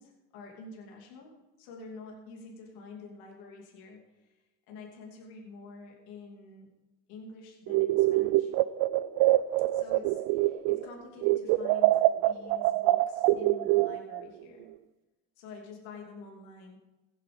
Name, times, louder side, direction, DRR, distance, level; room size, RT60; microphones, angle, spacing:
voice 1, 0.0-6.7 7.1-8.5 9.7-14.7 15.4-16.8, left 4 dB, 75° left, 0 dB, 2.9 m, -48 dB
sound 1, 7.7-10.9 11.2-14.2, right 16 dB, 75° right, 0.6 m, -25 dB
15.5 x 8.4 x 5.2 m, 1.1 s
supercardioid pair, 80°, 37 cm